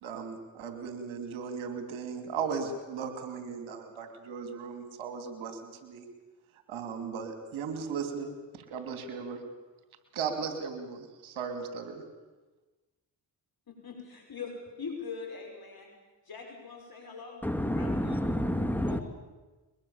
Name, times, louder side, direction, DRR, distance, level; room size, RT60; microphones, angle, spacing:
voice 1, 0.0-6.1 6.7-8.4 8.7-9.4 10.1-12.0, right 6 dB, 80° right, 7 dB, 3.0 m, -37 dB
voice 2, 13.7-15.9 16.3-17.5 17.7-18.2 18.8-19.0, left 5 dB, 50° left, 2 dB, 5.5 m, -42 dB
voice 3, 17.4-19.0, equal, 5° left, 8 dB, 2.4 m, -29 dB
22.0 x 21.5 x 7.2 m, 1.2 s
hypercardioid pair, 45°, 47 cm